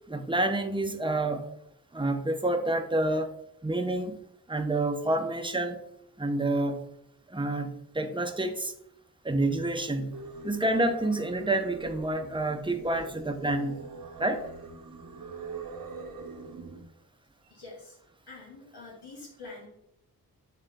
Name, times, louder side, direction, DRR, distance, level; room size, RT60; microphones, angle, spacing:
voice 1, 0.1-1.5 1.9-3.3 3.6-5.8 6.2-6.8 7.3-8.7 9.2-10.1 10.4-13.8 14.2-14.5, right 2 dB, 15° right, 6 dB, 0.9 m, -28 dB
Singing, 10.1-16.8, right 3 dB, 65° right, 1.2 m, -43 dB
voice 2, 17.4-18.0 18.3-19.7, left 3 dB, 85° left, -4 dB, 2.5 m, -46 dB
8.0 x 3.3 x 3.7 m, 0.76 s
cardioid pair, 45°, 38 cm